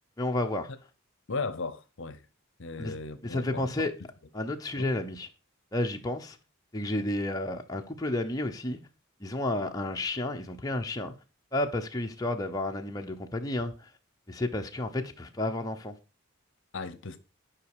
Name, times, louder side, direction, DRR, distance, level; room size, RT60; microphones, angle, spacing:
voice 1, 0.2-0.7 2.8-2.9 3.2-3.9 4.3-5.3 5.7-6.4 6.7-8.8 9.2-11.1 11.5-13.9 14.3-15.9, left 1 dB, 15° left, 0.8 m, -31 dB
voice 2, 1.3-2.2 2.6-3.9 4.8-4.9 16.7-17.2, left 4 dB, 60° left, 0.8 m, -36 dB
10.5 x 5.2 x 4.8 m
head